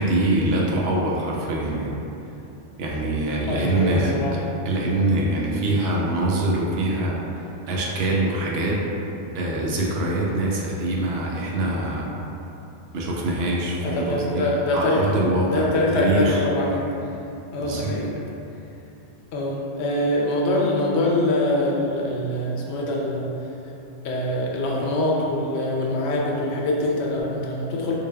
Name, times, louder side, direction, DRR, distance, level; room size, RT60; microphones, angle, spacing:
voice 1, 0.0-2.0 2.8-8.9 9.3-12.1 12.9-16.4 17.6-17.9, right 1 dB, 70° right, -3 dB, 0.8 m, -24 dB
voice 2, 3.5-4.3 13.8-15.0 15.5-16.9 17.5-18.1 19.3-23.3 24.0-27.9, left 1 dB, 75° left, -2 dB, 0.8 m, -24 dB
3.8 x 3.2 x 2.2 m, 2.9 s
omnidirectional pair, 1.1 m